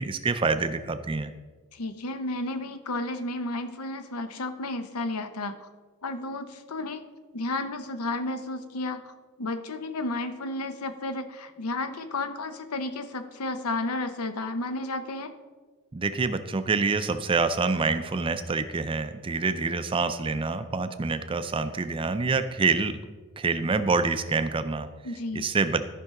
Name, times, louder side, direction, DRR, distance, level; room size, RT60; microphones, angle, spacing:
voice 1, 0.0-1.3 15.9-23.0 23.4-24.9 25.3-25.8, right 4 dB, 25° right, 11 dB, 0.4 m, -26 dB
voice 2, 1.7-5.7 6.0-9.1 9.4-15.3 25.0-25.5, left 2 dB, 85° left, 9 dB, 0.8 m, -32 dB
13.5 x 5.5 x 3.7 m, 1.4 s
head